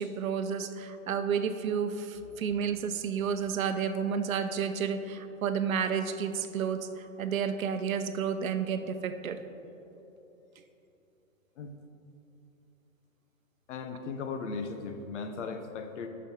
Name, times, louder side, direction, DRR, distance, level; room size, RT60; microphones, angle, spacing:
voice 1, 0.0-9.4, right 7 dB, 75° right, 9 dB, 0.7 m, -31 dB
voice 2, 13.7-16.1, left 4 dB, 55° left, 7 dB, 0.9 m, -37 dB
9.3 x 6.3 x 4.4 m, 3.0 s
hypercardioid pair, 150°, 41 cm